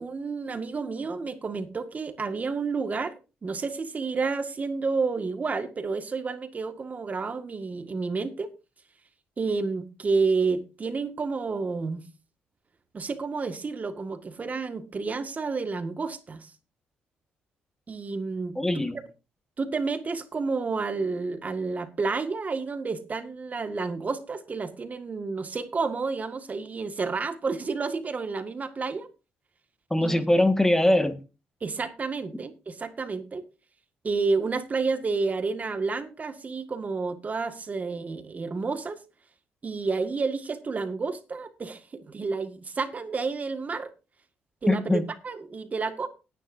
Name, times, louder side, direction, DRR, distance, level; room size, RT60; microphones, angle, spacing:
voice 1, 0.0-3.2 3.4-8.5 9.4-12.0 12.9-16.5 17.9-18.6 19.6-29.1 30.0-30.3 31.6-33.4 34.0-39.0 39.6-43.9 44.6-46.1, right 4 dB, 35° right, 1.8 m, -30 dB
voice 2, 18.5-19.0 29.9-31.2 44.7-45.0, left 1 dB, 10° left, 1.6 m, -22 dB
18.5 x 10.0 x 2.7 m
supercardioid pair, 70°, 4 cm